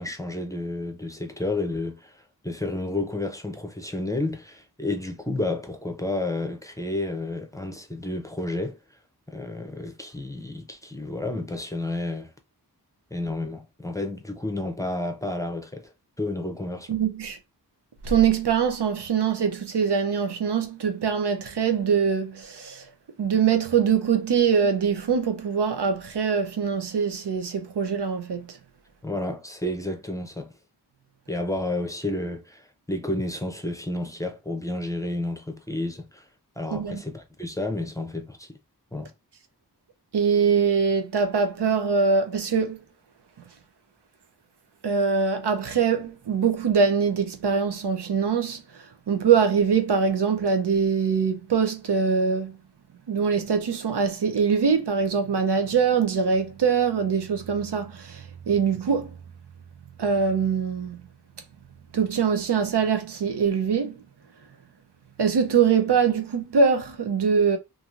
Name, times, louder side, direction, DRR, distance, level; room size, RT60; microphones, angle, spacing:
voice 1, 0.0-8.8 9.3-12.3 13.1-15.9 16.2-16.9 29.0-30.6 31.3-36.2 36.6-38.6 38.9-39.1, left 2 dB, 10° left, 0.6 m, -31 dB
voice 2, 16.9-17.4 18.0-22.9 23.2-28.6 36.7-37.0 40.1-42.8 44.8-52.6 53.1-59.2 60.0-61.0 61.9-64.0 65.2-67.6, right 6 dB, 85° right, 0.7 m, -23 dB
2.9 x 2.6 x 2.4 m
wide cardioid pair, 45°, 39 cm